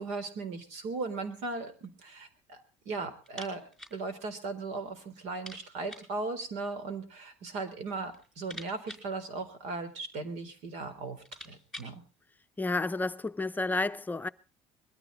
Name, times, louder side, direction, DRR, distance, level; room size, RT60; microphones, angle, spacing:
voice 1, 0.0-2.6 2.9-12.0, right 3 dB, 75° right, 3.8 m, -37 dB
sound 1, 3.2-4.0 4.3-4.4 4.7-4.8 5.3-6.2 7.1-7.7 8.0-10.0 10.7-10.8 11.1-12.0, left 1 dB, 5° right, 5.1 m, -48 dB
voice 2, 12.6-14.3, left 3 dB, 15° left, 0.7 m, -31 dB
21.5 x 14.0 x 4.0 m
cardioid pair, 120°, 12 cm